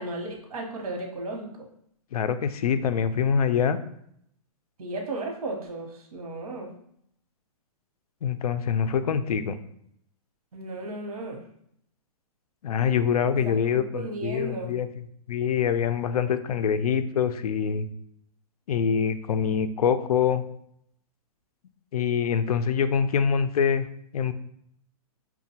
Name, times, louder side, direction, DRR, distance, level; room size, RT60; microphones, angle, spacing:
voice 1, 0.0-1.5 4.8-6.7 10.5-11.4 13.2-14.7, right 2 dB, 75° right, 1 dB, 0.9 m, -35 dB
voice 2, 2.1-3.8 8.2-9.6 12.6-14.9 15.3-17.8 18.7-20.4 21.9-23.9 24.1-24.3, left 7 dB, 80° left, 11 dB, 0.4 m, -25 dB
5.6 x 2.2 x 2.8 m, 0.71 s
hypercardioid pair, 175°, 19 cm